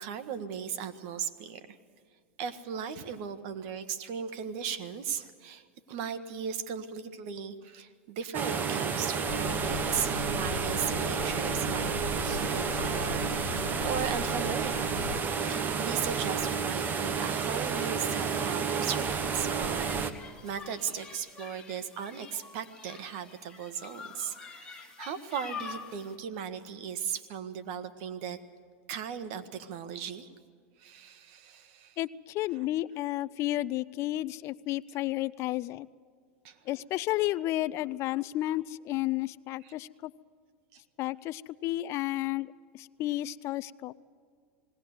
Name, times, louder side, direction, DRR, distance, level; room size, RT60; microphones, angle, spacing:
voice 1, 0.0-1.6 2.4-15.0 15.4-19.9 20.4-28.4 28.9-30.3 30.8-32.0 36.4-36.6 39.6-39.7 40.7-40.8, right 7 dB, 60° right, 10 dB, 1.5 m, -37 dB
sound 1, 8.3-20.1, right 6 dB, 25° right, 1.3 m, -31 dB
sound 2, 9.3-15.2, left 10 dB, 85° left, 0.7 m, -40 dB
sound 3, 17.5-26.1, left 6 dB, 10° left, 2.6 m, -47 dB
voice 2, 32.0-35.9 36.7-40.1 41.0-43.9, left 16 dB, 40° left, 19 dB, 0.5 m, -32 dB
20.0 x 18.0 x 8.1 m, 2.1 s
supercardioid pair, 125°, 7 cm